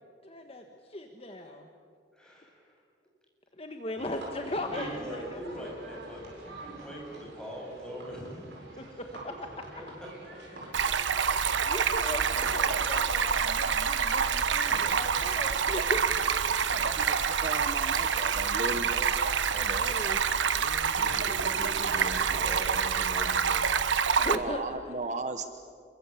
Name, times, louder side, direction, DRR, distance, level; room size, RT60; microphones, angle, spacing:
voice 1, 0.2-1.7 3.6-5.7 8.8-9.5 11.2-16.0 19.9-20.2 20.6-21.2 24.2-24.8, left 1 dB, 30° left, 4 dB, 1.5 m, -38 dB
voice 2, 2.1-2.8 4.7-8.5 8.9-9.0 10.0-10.1 14.7-15.5 20.9-23.6, equal, 5° left, -3 dB, 7.5 m, -42 dB
sound 1, 4.0-20.7, right 2 dB, 65° right, 7.1 m, -47 dB
Stream, 10.7-24.4, right 6 dB, 85° right, 1.0 m, -27 dB
voice 3, 16.8-20.0 24.3-25.5, right 2 dB, 40° right, 8 dB, 1.0 m, -36 dB
27.5 x 23.0 x 8.4 m, 2.2 s
head